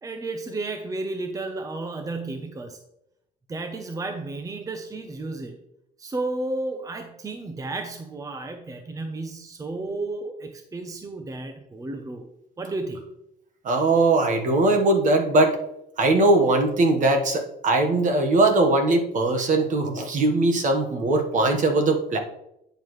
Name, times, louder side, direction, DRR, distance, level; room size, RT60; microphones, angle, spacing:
voice 1, 0.0-2.8 3.5-5.5 6.0-12.3 12.6-13.1, right 2 dB, 20° right, 5 dB, 0.8 m, -32 dB
voice 2, 13.6-15.6 16.0-22.2, right 2 dB, 50° right, 5 dB, 1.4 m, -20 dB
9.1 x 6.9 x 3.2 m, 0.82 s
cardioid pair, 110°, 17 cm